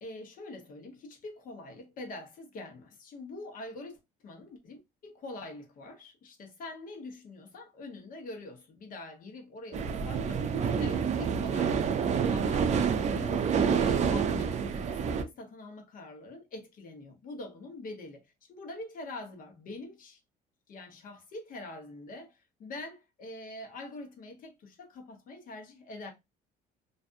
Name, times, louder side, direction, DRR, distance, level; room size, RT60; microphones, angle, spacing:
voice 1, 0.0-13.5 13.8-20.2 20.7-26.1, left 2 dB, 55° left, 0.9 m, -44 dB
sound 1, 9.7-15.2, right 6 dB, 45° right, 0.4 m, -28 dB
2.5 x 2.3 x 2.5 m
cardioid pair, 110°, 17 cm